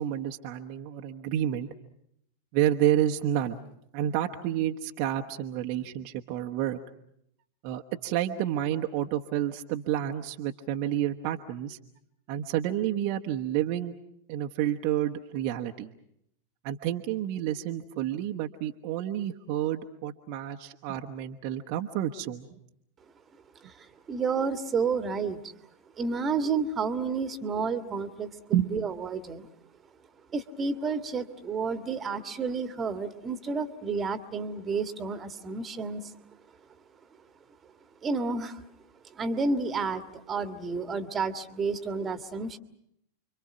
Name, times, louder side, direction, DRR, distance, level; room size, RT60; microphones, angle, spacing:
voice 1, 0.0-1.7 2.5-3.6 3.9-6.8 7.6-11.8 12.3-13.9 14.3-15.9 16.6-22.5 28.5-28.7, right 11 dB, 45° right, 3 dB, 1.2 m, -29 dB
voice 2, 23.6-25.5 26.0-29.5 30.3-36.1 38.0-38.6 39.1-42.6, right 4 dB, 20° right, 10 dB, 1.7 m, -31 dB
29.5 x 24.5 x 6.2 m, 0.75 s
figure-of-eight pair, 90°, 0 cm